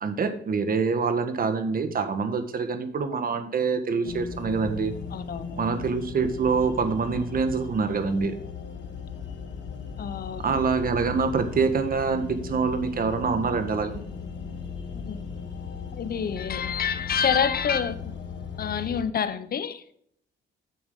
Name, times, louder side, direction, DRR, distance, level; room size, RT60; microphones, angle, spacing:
voice 1, 0.0-4.9 5.6-8.3 10.4-14.0, right 5 dB, 45° right, 8 dB, 1.6 m, -25 dB
sound 1, 4.0-19.0, left 6 dB, 65° left, 1.8 m, -37 dB
voice 2, 5.1-5.6 10.0-10.5 14.9-15.3 15.9-18.1 18.6-19.8, left 7 dB, 50° left, 12 dB, 1.0 m, -28 dB
9.4 x 7.2 x 3.8 m, 0.67 s
cardioid pair, 90°, 20 cm